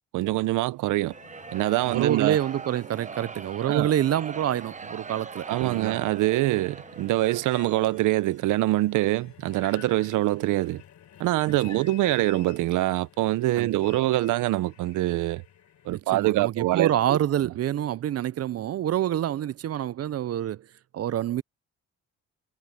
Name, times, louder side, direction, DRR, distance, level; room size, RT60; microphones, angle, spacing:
voice 1, 0.1-1.1 1.5-2.4 3.6-3.9 5.5-10.8 11.2-15.4 15.9-17.2, right 17 dB, 90° right, 0.8 m, -24 dB
sound 1, 0.9-8.2, right 5 dB, 25° right, 0.9 m, -41 dB
sound 2, 1.1-16.0, left 10 dB, 70° left, 3.7 m, -52 dB
voice 2, 1.9-6.0 11.6-11.8 13.6-13.8 15.9-20.6 20.9-21.4, right 11 dB, 55° right, 0.6 m, -27 dB
cardioid pair, 90°, 30 cm